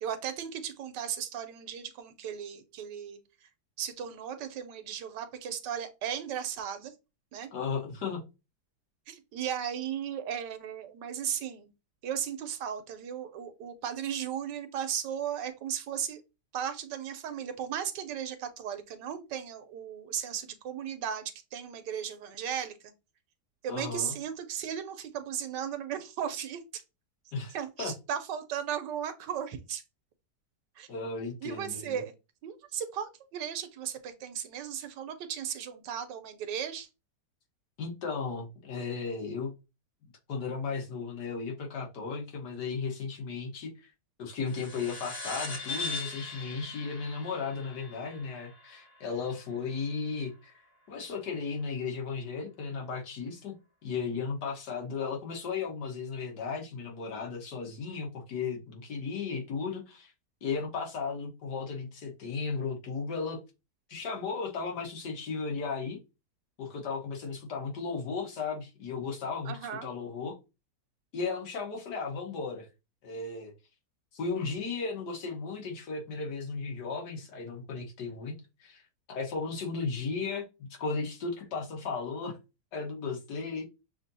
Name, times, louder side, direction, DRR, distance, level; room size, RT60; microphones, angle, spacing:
voice 1, 0.0-3.2 3.8-6.9 7.3-7.5 9.1-11.7 12.0-16.2 16.5-21.2 21.5-22.8 23.6-26.8 27.5-29.8 30.8-30.9 31.4-32.1 32.4-36.9 69.4-69.9, right 9 dB, 90° right, 1.3 m, -36 dB
voice 2, 7.5-8.2 23.7-24.2 27.3-27.9 30.9-32.0 37.8-39.5 40.3-43.9 44.2-50.5 50.9-53.5 53.8-60.1 60.4-63.4 63.9-66.0 66.6-69.5 69.8-70.4 71.1-72.7 73.0-73.5 74.1-78.8 79.1-80.4 80.8-82.4 82.7-83.7, left 5 dB, 70° left, 1.7 m, -35 dB
sound 1, 44.5-49.4, left 3 dB, 40° left, 1.0 m, -40 dB
6.6 x 2.7 x 2.7 m
omnidirectional pair, 1.9 m